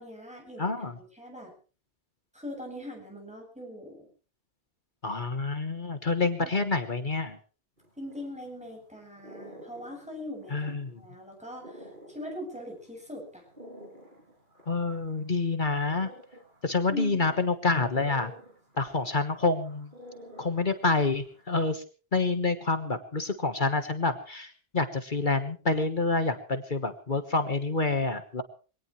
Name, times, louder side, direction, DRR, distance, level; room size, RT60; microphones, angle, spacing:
voice 1, 0.0-0.8 1.1-1.5 2.3-4.1 6.4-6.7 8.0-13.4 16.9-17.4, left 1 dB, 5° right, 0 dB, 8.0 m, -41 dB
voice 2, 0.6-0.9 5.0-7.4 10.5-11.0 14.7-16.1 16.6-18.3 18.8-19.9 20.4-21.8 22.1-28.4, left 3 dB, 45° left, 8 dB, 1.5 m, -28 dB
sound 1, 7.8-21.6, equal, 50° right, 6.0 m, -51 dB
23.5 x 18.5 x 3.2 m, 0.37 s
omnidirectional pair, 1.1 m